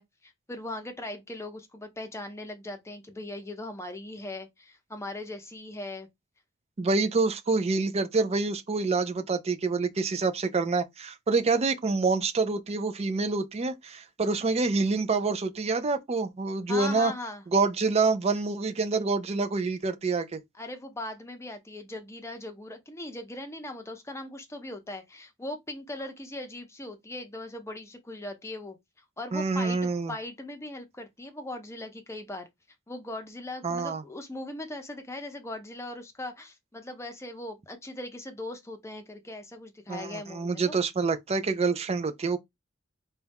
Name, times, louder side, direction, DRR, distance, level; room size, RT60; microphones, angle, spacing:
voice 1, 0.0-6.1 16.7-17.4 20.6-28.8 29.2-32.5 32.9-40.7, left 2 dB, 15° left, 0.6 m, -39 dB
voice 2, 6.8-17.1 17.5-20.4 29.3-30.1 33.6-34.0 39.9-42.4, right 4 dB, 30° right, 0.4 m, -27 dB
4.1 x 2.3 x 3.4 m
head